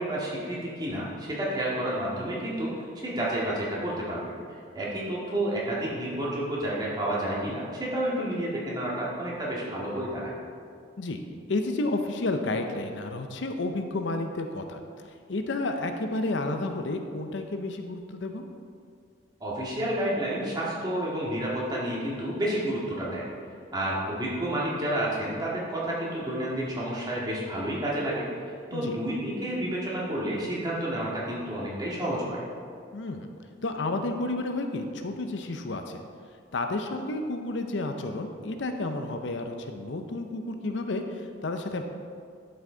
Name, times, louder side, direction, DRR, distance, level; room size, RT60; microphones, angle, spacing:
voice 1, 0.0-2.7 3.0-10.3 19.4-23.2 23.7-28.3 28.7-32.4, right 1 dB, 20° right, -6 dB, 1.8 m, -30 dB
voice 2, 11.5-14.8 15.3-18.4 28.7-29.0 32.9-33.3 33.6-36.0 36.5-41.8, left 2 dB, 75° left, 6 dB, 0.6 m, -31 dB
11.0 x 5.8 x 3.9 m, 2.2 s
head